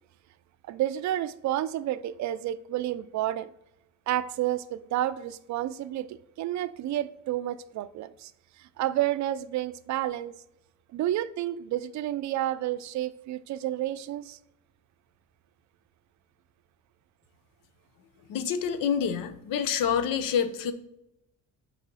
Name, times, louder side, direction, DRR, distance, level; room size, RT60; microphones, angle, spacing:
voice 1, 0.7-3.5 4.1-8.3 8.6-10.3 10.9-14.4, right 13 dB, 60° right, 14 dB, 0.4 m, -30 dB
voice 2, 18.3-20.7, left 7 dB, 80° left, 11 dB, 0.7 m, -27 dB
6.2 x 4.1 x 4.0 m, 0.84 s
cardioid pair, 125°, 33 cm